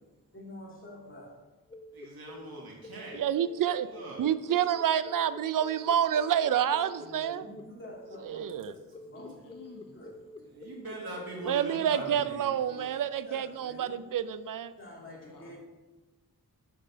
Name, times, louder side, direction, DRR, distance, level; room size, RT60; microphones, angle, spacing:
voice 1, 0.3-1.4 6.9-9.5 9.9-10.5 12.5-12.9 13.2-14.0 14.8-15.6, left 1 dB, 35° left, -4 dB, 2.1 m, -48 dB
sound 1, 1.7-11.5, left 1 dB, 15° left, 0.5 m, -48 dB
voice 2, 1.9-3.2 3.5-4.3 9.1-9.2 10.1-10.2 10.5-12.5, right 2 dB, 80° right, -3 dB, 1.7 m, -42 dB
voice 3, 3.2-3.9 4.2-7.4 8.3-8.7 11.5-14.7, right 9 dB, 65° right, 14 dB, 0.5 m, -28 dB
voice 4, 9.1-10.0 15.0-15.6, left 4 dB, 65° left, 2 dB, 1.4 m, -51 dB
5.7 x 5.0 x 6.5 m, 1.2 s
wide cardioid pair, 65°, 35 cm